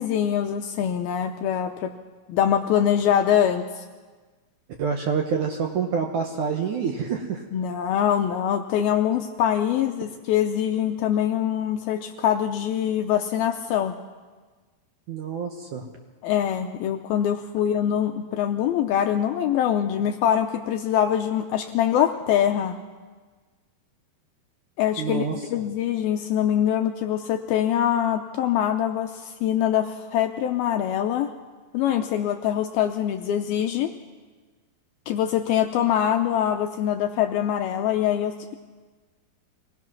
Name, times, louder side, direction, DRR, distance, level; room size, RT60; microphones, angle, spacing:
voice 1, 0.0-1.9 2.3-3.8 7.5-14.0 16.2-22.8 24.8-31.3 31.7-33.9 35.1-38.5, left 10 dB, 75° left, 6 dB, 2.3 m, -24 dB
voice 2, 4.8-7.4 15.1-15.8 25.0-25.4, right 6 dB, 65° right, 3 dB, 2.0 m, -27 dB
24.0 x 18.5 x 6.1 m, 1.4 s
omnidirectional pair, 5.0 m